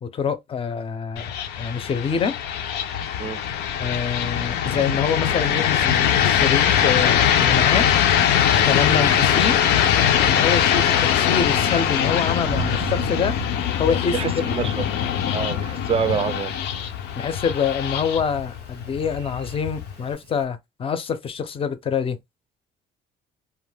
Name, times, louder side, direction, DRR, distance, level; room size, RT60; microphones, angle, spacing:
voice 1, 0.0-2.4 3.8-7.9 8.7-9.7 10.2-13.4 13.8-14.7 17.2-22.2, left 6 dB, 35° left, 0.5 m, -26 dB
sound 1, 1.2-20.1, left 9 dB, 85° left, 0.5 m, -22 dB
Thunder, 8.1-20.4, right 4 dB, 90° right, 0.6 m, -39 dB
voice 2, 14.1-14.9 15.3-16.6, right 7 dB, 35° right, 0.4 m, -26 dB
2.2 x 2.1 x 3.3 m
cardioid pair, 110°, 17 cm